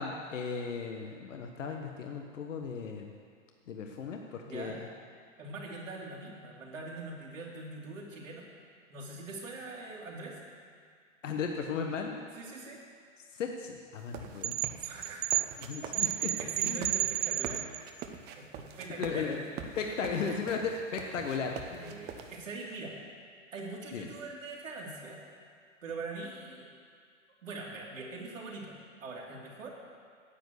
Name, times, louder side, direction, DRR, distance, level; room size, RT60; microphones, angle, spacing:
voice 1, 0.0-3.1 3.7-4.8 11.2-12.3 13.3-14.6 15.6-16.3 16.6-17.0 19.0-19.4 19.8-22.0 23.9-24.1, left 5 dB, 70° left, 3 dB, 1.4 m, -36 dB
voice 2, 4.4-4.8 5.4-8.5 8.9-10.4 12.3-12.8 14.7-15.3 15.8-17.7 18.4-19.4 19.8-20.4 21.8-23.0 23.5-25.2 25.8-26.7 27.4-29.7, right 3 dB, 85° right, -3 dB, 3.2 m, -43 dB
sound 1, 14.0-22.4, right 7 dB, 25° right, 0.9 m, -44 dB
sound 2, 14.4-18.0, right 15 dB, 55° right, 0.5 m, -31 dB
10.0 x 8.3 x 8.2 m, 2.1 s
hypercardioid pair, 130°, 38 cm